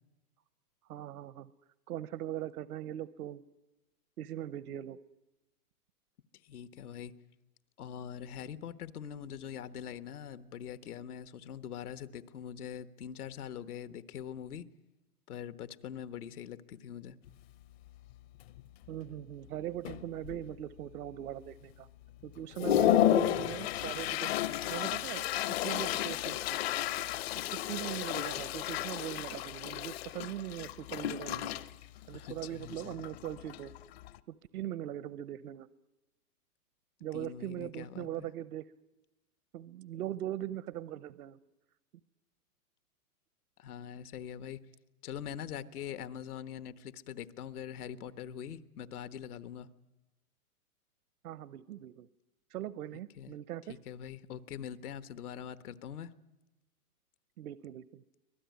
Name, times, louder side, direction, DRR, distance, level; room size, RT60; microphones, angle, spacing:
voice 1, 0.9-1.5 1.9-3.4 4.2-5.0 18.9-21.9 22.2-24.3 24.7-26.6 27.3-31.7 32.1-33.7 34.3-35.7 37.0-38.7 39.5-41.4 51.2-52.1 52.5-53.7 57.4-58.0, right 12 dB, 75° right, 16 dB, 0.8 m, -40 dB
voice 2, 6.4-7.1 7.8-14.6 15.3-17.2 32.1-32.9 37.1-38.3 43.6-44.6 45.0-49.7 53.2-53.3 53.7-56.1, left 9 dB, 75° left, 13 dB, 1.3 m, -43 dB
Toilet flush, 17.3-17.4 17.9-18.1 18.4-19.0 19.5-19.6 19.9-20.6 21.1-21.2 21.7-21.8 22.2-34.2, left 13 dB, 45° left, 0.7 m, -32 dB
24.5 x 18.5 x 9.4 m, 1.0 s
hypercardioid pair, 145°, 45 cm